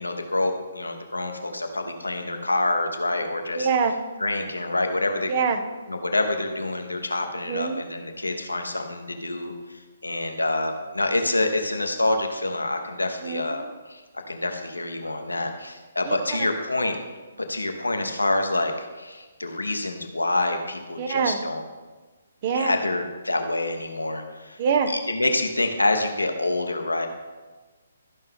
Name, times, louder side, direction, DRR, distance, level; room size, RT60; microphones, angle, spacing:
voice 1, 0.0-3.7 4.2-5.3 5.9-13.6 13.9-17.0 17.5-21.6 22.5-24.6 24.9-27.1, left 2 dB, 85° left, 5 dB, 1.1 m, -27 dB
voice 2, 3.6-4.0 5.3-5.6 7.5-7.8 13.2-13.5 16.1-16.5 21.0-21.4 22.4-22.7 24.6-24.9, right 5 dB, 40° right, 7 dB, 0.9 m, -24 dB
13.0 x 5.5 x 3.6 m, 1.3 s
figure-of-eight pair, 135°, 0 cm